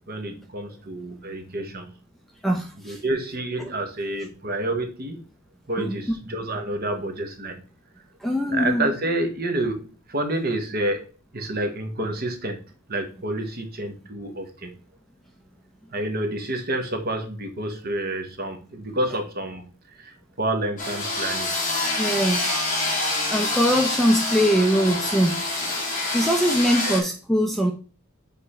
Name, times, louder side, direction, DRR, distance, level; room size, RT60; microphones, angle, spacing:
voice 1, 0.1-1.9 2.8-5.2 5.7-7.6 8.5-11.1 11.3-12.6 12.9-14.8 15.9-21.5 26.8-27.1, right 1 dB, 45° right, 4 dB, 1.2 m, -29 dB
voice 2, 2.4-3.0 3.6-3.7 5.8-6.0 8.2-8.9 22.0-22.6 23.3-25.4 26.1-27.7, equal, ahead, 2 dB, 0.6 m, -22 dB
sound 1, 20.8-27.0, left 2 dB, 35° left, 1.7 m, -26 dB
6.7 x 3.8 x 4.3 m, 0.36 s
head